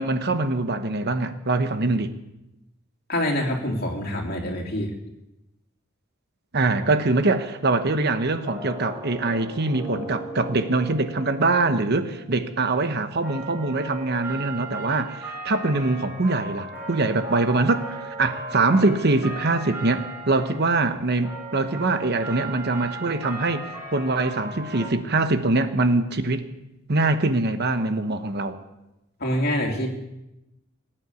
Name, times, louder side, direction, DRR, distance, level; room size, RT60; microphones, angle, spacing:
voice 1, 0.0-2.1 6.5-23.6 23.9-26.4 26.9-28.6, right 2 dB, 55° right, 9 dB, 1.1 m, -23 dB
voice 2, 3.1-4.9 29.2-29.9, left 1 dB, 50° left, 1 dB, 3.0 m, -25 dB
sound 1, 8.4-24.9, right 2 dB, 10° right, 7.1 m, -37 dB
19.0 x 9.0 x 8.2 m, 0.92 s
head